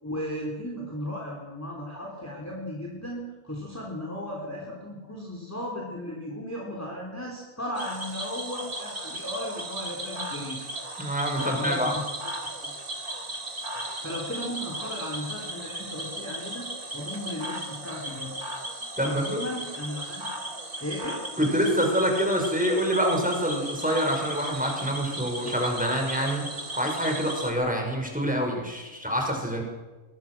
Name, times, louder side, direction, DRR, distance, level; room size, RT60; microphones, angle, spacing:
voice 1, 0.0-10.6 11.3-11.9 12.6-12.7 13.7-18.3 18.6-20.3 20.8-21.2, left 1 dB, 10° left, -2 dB, 3.9 m, -36 dB
Cricket / Frog, 7.7-27.5, right 1 dB, 80° right, 3.8 m, -36 dB
voice 2, 11.0-11.9 19.0-19.4 21.4-26.5 26.8-29.6, equal, 5° right, 1 dB, 5.7 m, -26 dB
22.5 x 21.5 x 6.3 m, 1.2 s
omnidirectional pair, 1.6 m